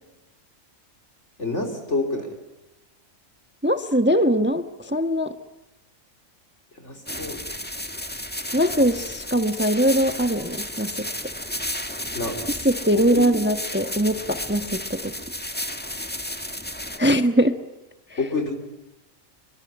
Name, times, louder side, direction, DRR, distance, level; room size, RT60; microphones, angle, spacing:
voice 1, 1.4-2.4 6.7-7.4 12.1-12.4 15.8-15.9 18.2-18.5, left 3 dB, 55° left, 3 dB, 3.7 m, -28 dB
voice 2, 3.6-5.3 8.5-11.1 12.6-15.1 17.0-17.6 18.1-18.2, equal, 10° right, 8 dB, 1.1 m, -21 dB
sound 1, 7.1-17.0, left 1 dB, 5° left, 1.6 m, -33 dB
26.5 x 23.5 x 8.7 m, 0.99 s
omnidirectional pair, 1.4 m